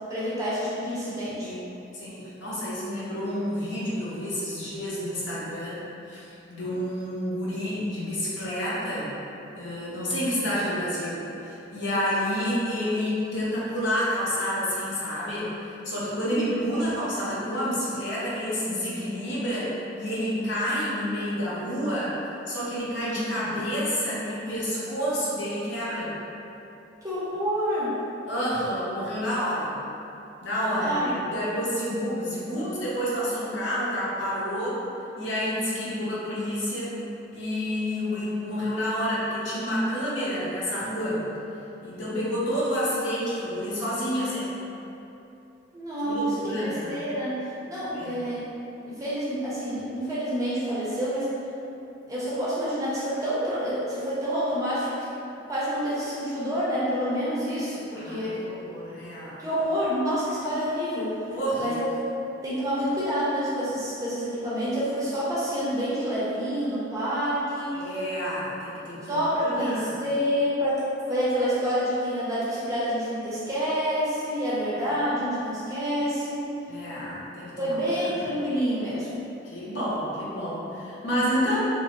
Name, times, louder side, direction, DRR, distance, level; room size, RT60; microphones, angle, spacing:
voice 1, 0.1-1.5 16.2-16.6 27.0-28.0 30.8-31.1 45.7-48.4 48.8-51.3 52.1-55.1 55.5-58.4 59.4-61.1 61.6-61.8 62.4-67.8 69.0-76.4 77.6-79.1, equal, 15° right, -9 dB, 0.6 m, -28 dB
voice 2, 1.4-9.1 9.5-22.2 22.5-26.1 28.3-29.7 30.4-34.8 35.2-37.0 37.3-41.2 41.8-44.6 46.0-47.1 47.9-48.2 57.9-59.4 61.3-61.8 67.7-70.1 74.7-75.0 76.7-78.3 79.4-81.7, equal, 65° left, -8 dB, 0.8 m, -29 dB
2.9 x 2.6 x 2.9 m, 2.9 s
head